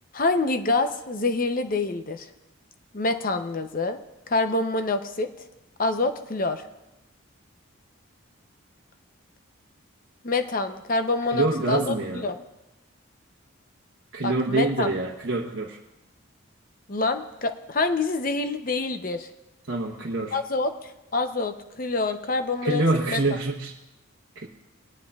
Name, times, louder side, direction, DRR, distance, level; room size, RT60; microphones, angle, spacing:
voice 1, 0.1-2.3 2.9-4.0 4.3-5.3 5.8-6.6 10.2-11.9 12.2-12.4 14.2-14.9 16.9-19.3 20.3-20.7 21.1-22.8 23.1-23.2, left 3 dB, 40° left, 8 dB, 0.7 m, -26 dB
voice 2, 11.3-12.2 14.1-15.8 19.7-20.4 22.6-23.8 24.3-24.5, right 2 dB, 65° right, -2 dB, 1.0 m, -26 dB
19.5 x 10.5 x 2.4 m, 0.98 s
head